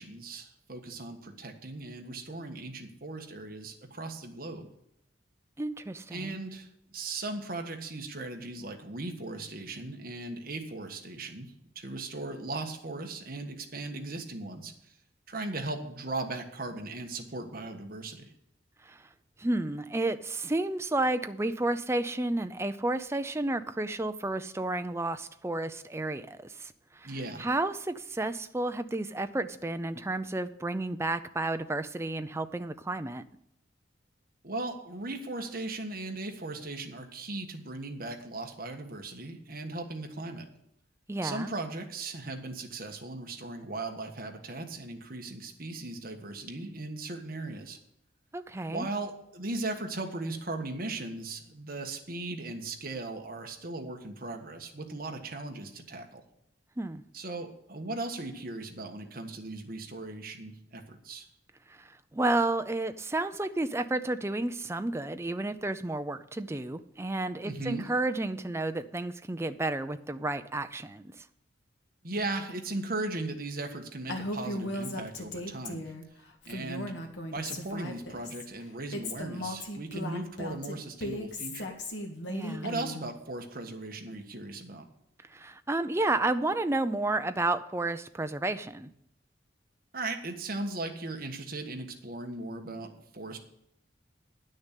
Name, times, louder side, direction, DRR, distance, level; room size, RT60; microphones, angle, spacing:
voice 1, 0.0-4.7 6.1-14.9 15.3-18.3 27.0-27.5 34.4-40.5 41.2-47.8 48.7-56.2 57.1-61.3 67.4-67.9 72.0-75.9 76.4-77.0 77.3-81.7 82.6-84.9 89.9-93.4, right 2 dB, 50° right, 4 dB, 1.4 m, -38 dB
voice 2, 5.6-6.4 18.8-19.1 19.4-27.1 27.4-33.2 41.1-41.5 48.3-48.9 56.8-57.0 61.7-71.3 82.3-82.7 85.3-88.9, right 2 dB, 15° right, 10 dB, 0.5 m, -31 dB
Female speech woman speaking, 74.1-76.0 76.4-78.4 78.9-83.0, left 1 dB, 70° left, 1.9 m, -37 dB
10.5 x 6.5 x 8.3 m, 0.76 s
head